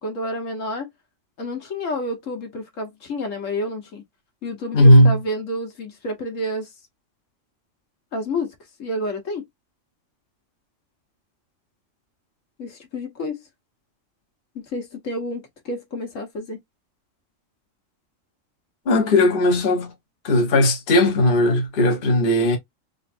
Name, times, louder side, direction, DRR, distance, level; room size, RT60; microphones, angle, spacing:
voice 1, 0.0-0.9 1.4-4.0 4.4-6.7 8.1-8.5 8.8-9.4 12.6-13.4 14.5-16.6, left 1 dB, 70° left, 1.6 m, -29 dB
voice 2, 4.7-5.2 18.9-19.9 20.2-22.6, left 1 dB, 45° left, 1.2 m, -16 dB
3.8 x 3.2 x 2.5 m
omnidirectional pair, 1.4 m